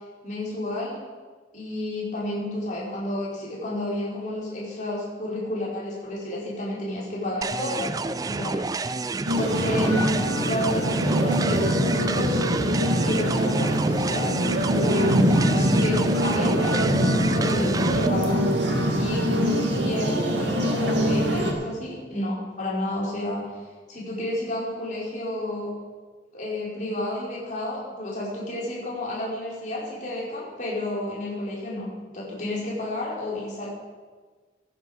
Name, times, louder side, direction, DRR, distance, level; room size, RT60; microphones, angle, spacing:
voice 1, 0.2-1.0 1.5-8.8 9.4-10.1 10.5-12.3 12.9-18.4 19.0-23.5 23.9-25.7 26.3-33.8, left 1 dB, 45° left, -5 dB, 4.2 m, -31 dB
sound 1, 7.4-18.1, right 3 dB, 20° right, 0.3 m, -30 dB
sound 2, 9.3-21.5, equal, 85° right, 2.3 m, -23 dB
16.5 x 9.8 x 4.9 m, 1.4 s
head